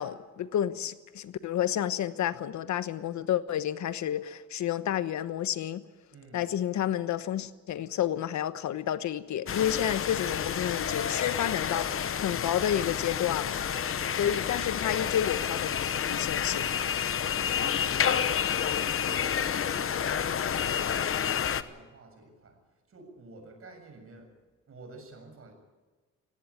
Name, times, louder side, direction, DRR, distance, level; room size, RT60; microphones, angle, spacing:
voice 1, 0.0-5.8 6.3-13.7 14.2-15.7 16.0-16.7, left 10 dB, 70° left, 13 dB, 1.2 m, -30 dB
voice 2, 6.1-6.5 14.0-14.8 17.1-24.3 24.7-25.5, right 2 dB, 50° right, 5 dB, 7.3 m, -51 dB
sound 1, 9.5-21.6, left 8 dB, 45° left, 1.0 m, -29 dB
18.5 x 17.5 x 8.7 m, 1.3 s
cardioid pair, 90°, 30 cm